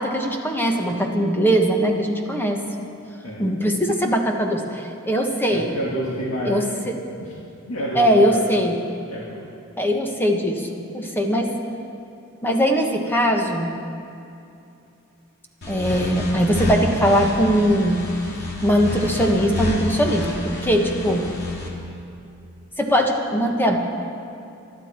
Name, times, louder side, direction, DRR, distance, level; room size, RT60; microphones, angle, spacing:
voice 1, 0.0-2.6 3.4-5.7 6.4-6.6 7.9-8.8 9.8-11.5 12.4-13.7 15.7-18.0 18.6-21.3 22.8-23.8, equal, 10° left, 2 dB, 1.3 m, -20 dB
voice 2, 5.5-6.6 7.2-7.4 7.7-8.4 9.1-9.4, equal, 70° left, -5 dB, 2.0 m, -28 dB
sound 1, 15.6-21.7, left 1 dB, 50° left, 2.5 m, -29 dB
24.0 x 11.5 x 4.5 m, 2.7 s
head